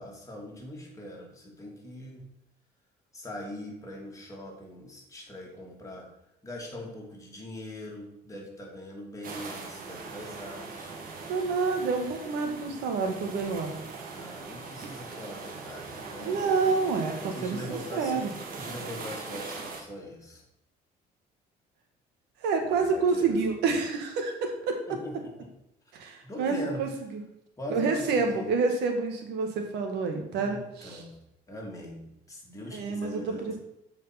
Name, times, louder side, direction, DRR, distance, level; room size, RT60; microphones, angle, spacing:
voice 1, 0.0-2.3 3.1-6.1 6.4-11.0 14.1-16.7 17.2-18.2 18.6-20.4 22.7-23.4 24.9-25.5 26.2-26.8 27.6-28.5 30.3-31.2 31.5-33.6, left 1 dB, 20° left, -2 dB, 2.5 m, -41 dB
sound 1, 9.2-19.8, right 4 dB, 55° right, 1.6 m, -41 dB
voice 2, 11.3-13.7 16.2-18.3 22.4-24.8 25.9-27.2 27.7-31.0 32.7-33.6, right 4 dB, 85° right, 4 dB, 1.6 m, -28 dB
7.9 x 4.9 x 5.8 m, 0.83 s
cardioid pair, 110°, 17 cm